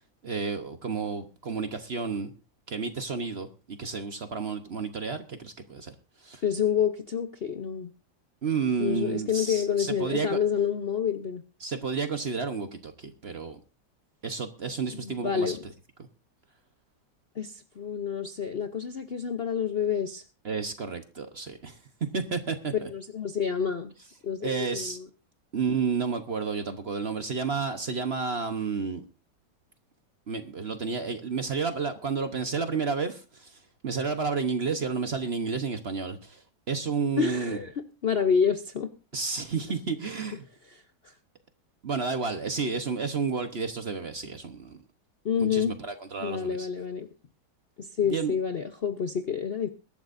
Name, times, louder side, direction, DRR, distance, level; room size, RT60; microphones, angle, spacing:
voice 1, 0.2-2.3 2.7-5.9 6.2-6.4 8.4-10.4 11.6-13.6 14.2-15.6 20.4-21.8 22.1-22.9 24.4-25.0 25.5-29.0 30.3-37.6 39.1-40.5 41.8-44.8 45.4-46.7 48.0-48.3, right 5 dB, 40° right, 1.1 m, -31 dB
voice 2, 6.4-7.9 8.8-11.4 14.9-15.6 17.4-20.2 22.9-23.9 24.2-25.1 37.2-38.9 40.7-41.1 45.2-45.7 46.2-47.1 47.8-49.7, left 7 dB, 50° left, 0.7 m, -28 dB
22.0 x 12.0 x 2.6 m
omnidirectional pair, 1.9 m